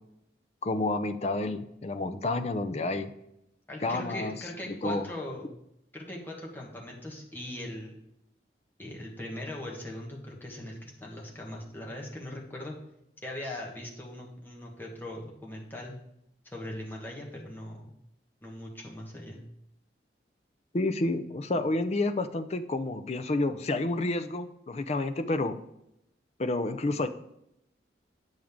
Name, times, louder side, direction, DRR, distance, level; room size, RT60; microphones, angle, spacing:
voice 1, 0.6-3.1 3.8-4.4 4.7-5.1 20.7-25.6 26.4-27.1, left 2 dB, 35° left, 9 dB, 0.5 m, -29 dB
voice 2, 3.7-5.5 5.9-8.0 8.8-12.8 13.2-16.0 16.5-17.9 18.4-19.4, left 1 dB, 10° left, -2 dB, 1.4 m, -40 dB
8.7 x 6.3 x 3.6 m, 0.81 s
head